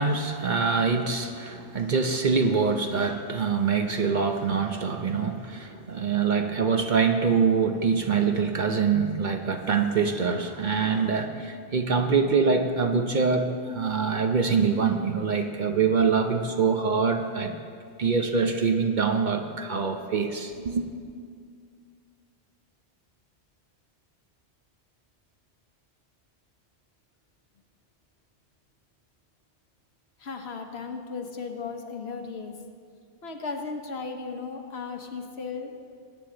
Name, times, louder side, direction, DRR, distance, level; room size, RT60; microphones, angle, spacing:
voice 1, 0.0-17.6 18.0-20.9, right 5 dB, 50° right, 5 dB, 0.8 m, -24 dB
voice 2, 30.2-32.6 33.2-35.7, left 4 dB, 70° left, 4 dB, 1.3 m, -36 dB
19.5 x 8.9 x 3.8 m, 2.2 s
omnidirectional pair, 1.2 m